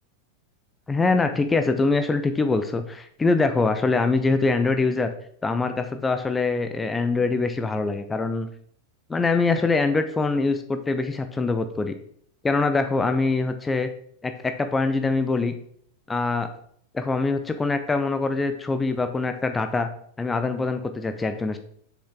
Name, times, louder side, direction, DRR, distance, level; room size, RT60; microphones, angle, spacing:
voice 1, 0.9-5.1 5.4-8.5 9.1-11.9 12.4-13.9 14.2-15.5 16.1-16.5 16.9-19.9 20.2-21.6, left 3 dB, 10° left, 8 dB, 0.5 m, -23 dB
6.6 x 5.2 x 3.8 m, 0.65 s
figure-of-eight pair, 90°, 0 cm